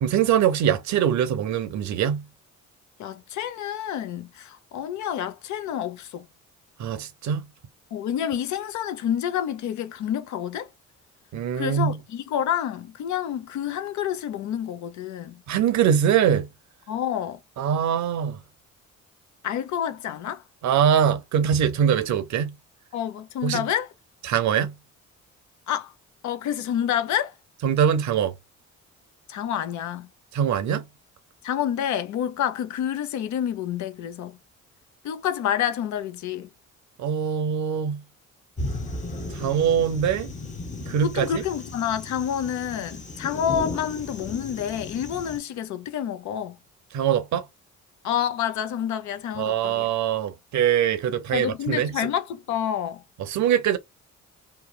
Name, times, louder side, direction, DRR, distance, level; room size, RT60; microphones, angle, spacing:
voice 1, 0.0-2.2 6.8-7.5 11.3-12.0 15.5-16.5 17.6-18.4 20.6-22.5 23.4-23.7 24.3-24.7 27.6-28.3 30.3-30.8 37.0-38.0 39.3-40.3 40.9-41.4 46.9-47.5 49.4-51.9 53.2-53.8, right 8 dB, 70° right, 0.6 m, -23 dB
voice 2, 3.0-6.3 7.9-10.7 11.5-15.4 16.9-17.4 19.4-20.4 22.9-23.9 25.7-25.9 26.2-27.3 29.3-30.1 31.4-34.4 35.0-36.5 41.0-46.6 48.0-49.9 51.3-53.0, left 9 dB, 70° left, 0.6 m, -28 dB
sound 1, 38.6-45.4, left 2 dB, 25° left, 0.8 m, -35 dB
2.9 x 2.1 x 2.2 m
cardioid pair, 90°, 30 cm